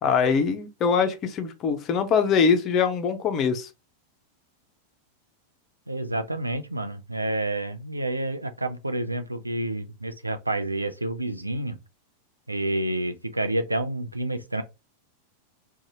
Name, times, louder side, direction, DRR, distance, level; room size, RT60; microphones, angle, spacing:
voice 1, 0.0-3.7, left 6 dB, 30° left, 0.5 m, -23 dB
voice 2, 5.9-11.8 12.5-14.6, right 1 dB, 85° right, 0.4 m, -29 dB
2.6 x 2.3 x 2.8 m
figure-of-eight pair, 90°, 0 cm